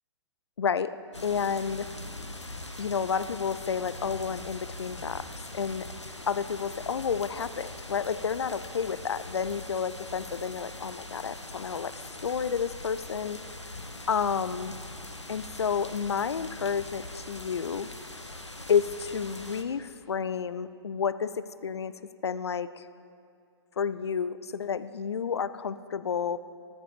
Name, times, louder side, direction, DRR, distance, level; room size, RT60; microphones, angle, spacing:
voice 1, 0.6-1.0 1.2-1.9 2.8-5.3 5.5-5.9 6.3-11.9 12.2-13.4 14.1-14.7 15.3-17.9 18.7-21.9 22.2-22.9 23.8-26.4, left 6 dB, 65° left, 15 dB, 0.6 m, -30 dB
sound 1, 1.1-19.6, left 1 dB, 90° left, 1.4 m, -42 dB
14.0 x 13.5 x 7.0 m, 2.4 s
figure-of-eight pair, 120°, 15 cm